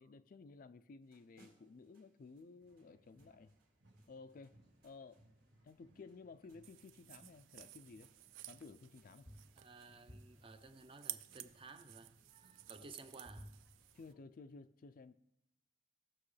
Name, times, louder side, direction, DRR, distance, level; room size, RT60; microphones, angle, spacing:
voice 1, 0.0-3.5 4.1-4.6 4.8-5.2 5.6-8.1 8.4-9.3 12.8-12.9 13.9-15.2, left 4 dB, 45° left, 0.4 m, -55 dB
sound 1, 1.0-14.1, equal, 50° right, 1.8 m, -65 dB
sound 2, 2.6-14.2, right 1 dB, 65° right, 1.6 m, -70 dB
sound 3, 6.6-14.1, right 15 dB, 85° right, 0.4 m, -54 dB
voice 2, 9.5-13.5, right 3 dB, 30° right, 0.6 m, -56 dB
15.5 x 6.2 x 3.2 m
head